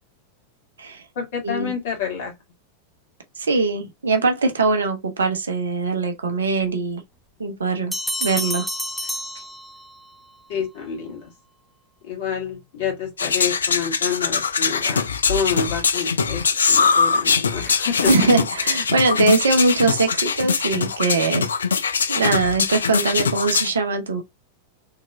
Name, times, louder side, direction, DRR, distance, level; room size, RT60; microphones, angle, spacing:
voice 1, 1.2-2.3 10.5-11.3 12.0-16.4 16.7-18.2, left 6 dB, 55° left, 2.1 m, -28 dB
voice 2, 3.4-7.0 7.4-7.9 8.2-8.7 18.0-21.4 22.1-24.2, right 3 dB, 70° right, 0.8 m, -21 dB
sound 1, 7.9-10.1, left 1 dB, 5° left, 0.5 m, -29 dB
sound 2, 13.2-23.7, left 5 dB, 70° left, 0.4 m, -22 dB
3.8 x 3.0 x 2.6 m
figure-of-eight pair, 90°, 0 cm